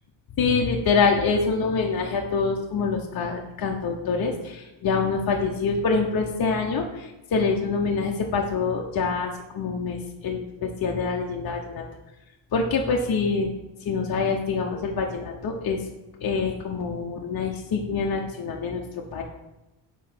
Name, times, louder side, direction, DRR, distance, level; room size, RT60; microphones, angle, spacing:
voice 1, 0.4-10.0 10.2-11.8 12.5-13.5 13.8-15.8 16.2-19.2, left 4 dB, 45° left, 0 dB, 0.8 m, -25 dB
4.7 x 4.0 x 5.5 m, 0.97 s
supercardioid pair, 65°, 50 cm